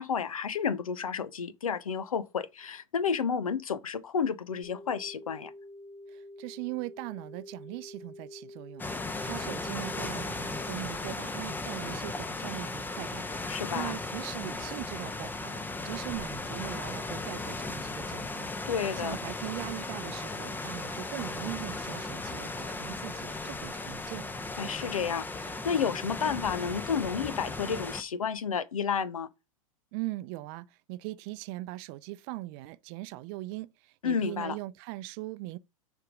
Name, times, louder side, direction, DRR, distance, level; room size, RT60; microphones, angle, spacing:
voice 1, 0.0-5.5 13.5-13.9 18.7-19.2 24.6-29.3 34.0-34.6, left 6 dB, 85° left, 0.7 m, -31 dB
sound 1, 4.6-10.7, left 1 dB, 45° left, 2.9 m, -48 dB
voice 2, 6.1-8.8 9.2-15.6 15.8-18.5 19.0-24.3 29.9-35.6, right 19 dB, 50° right, 0.5 m, -40 dB
sound 2, 8.8-28.0, left 3 dB, 10° left, 0.7 m, -36 dB
6.6 x 3.6 x 5.0 m
hypercardioid pair, 100°, 18 cm